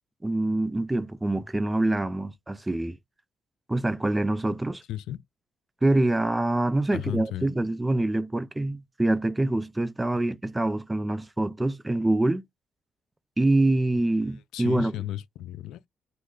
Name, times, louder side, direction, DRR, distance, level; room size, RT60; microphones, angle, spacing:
voice 1, 0.2-3.0 3.7-4.8 5.8-12.4 13.4-14.9, right 2 dB, 15° right, 0.4 m, -25 dB
voice 2, 4.9-5.2 6.9-7.5 14.5-15.8, left 12 dB, 85° left, 0.3 m, -34 dB
3.1 x 2.1 x 3.7 m
cardioid pair, 90°, 0 cm